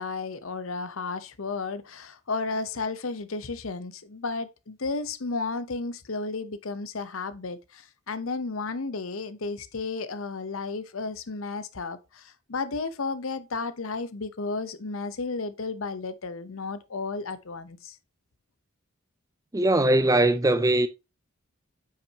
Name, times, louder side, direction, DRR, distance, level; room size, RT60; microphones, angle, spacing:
voice 1, 0.0-18.0, left 3 dB, 75° left, 0.8 m, -33 dB
voice 2, 19.5-20.9, right 1 dB, 15° right, 0.4 m, -21 dB
8.9 x 5.8 x 2.8 m
head